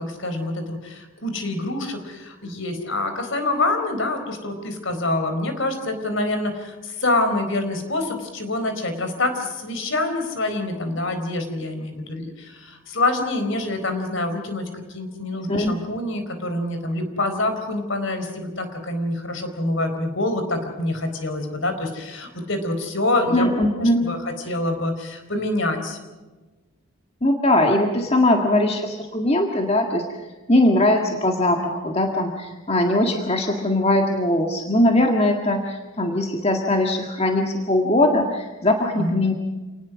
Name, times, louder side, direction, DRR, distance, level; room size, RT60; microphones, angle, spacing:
voice 1, 0.0-26.0 38.9-39.2, left 2 dB, 60° left, 7 dB, 4.4 m, -26 dB
voice 2, 23.3-24.1 27.2-30.1 30.5-39.3, left 1 dB, 30° left, 3 dB, 1.8 m, -20 dB
28.0 x 19.5 x 6.3 m, 1.2 s
head